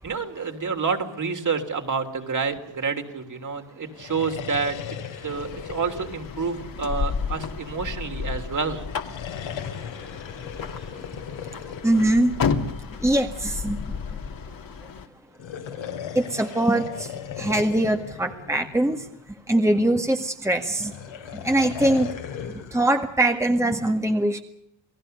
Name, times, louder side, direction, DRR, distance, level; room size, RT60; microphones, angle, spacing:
voice 1, 0.0-4.8 5.2-8.8, right 5 dB, 40° right, 5 dB, 3.4 m, -28 dB
sound 1, 3.9-7.5 8.8-13.1 15.3-19.3 20.6-22.9, left 8 dB, 80° left, 3.9 m, -37 dB
sound 2, 5.3-15.1, left 5 dB, 45° left, 2.6 m, -32 dB
voice 2, 11.8-12.3 13.0-13.8 16.2-19.1 19.5-20.9 21.3-22.1 22.7-24.4, right 1 dB, 5° right, 4 dB, 1.9 m, -22 dB
29.5 x 18.0 x 6.7 m, 0.76 s
cardioid pair, 95°, 45 cm